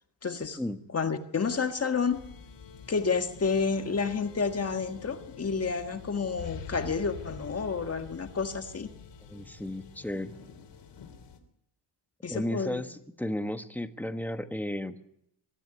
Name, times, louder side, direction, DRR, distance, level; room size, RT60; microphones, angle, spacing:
voice 1, 0.2-0.6 0.9-2.2 2.9-8.9 12.2-12.8, left 5 dB, 35° left, 6 dB, 1.7 m, -30 dB
sound 1, 2.1-11.4, left 6 dB, 80° left, 3.5 m, -46 dB
voice 2, 9.3-10.3 12.3-15.0, left 1 dB, 5° left, 8 dB, 1.3 m, -34 dB
23.5 x 13.5 x 9.8 m, 0.75 s
cardioid pair, 120°, 43 cm